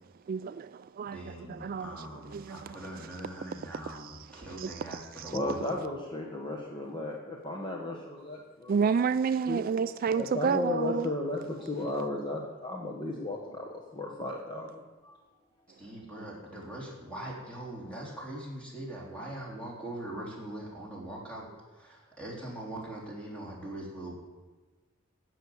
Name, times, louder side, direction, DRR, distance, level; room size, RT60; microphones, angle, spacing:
voice 1, 0.3-1.9 2.3-2.8 3.7-5.4 8.7-11.1, right 6 dB, 45° right, 0.3 m, -31 dB
voice 2, 1.1-5.7 15.8-24.1, right 1 dB, 5° left, 3.7 m, -42 dB
voice 3, 5.3-8.7 9.5-9.6 10.2-14.8 16.2-16.3, left 2 dB, 25° left, 1.3 m, -34 dB
15.5 x 6.4 x 8.3 m
head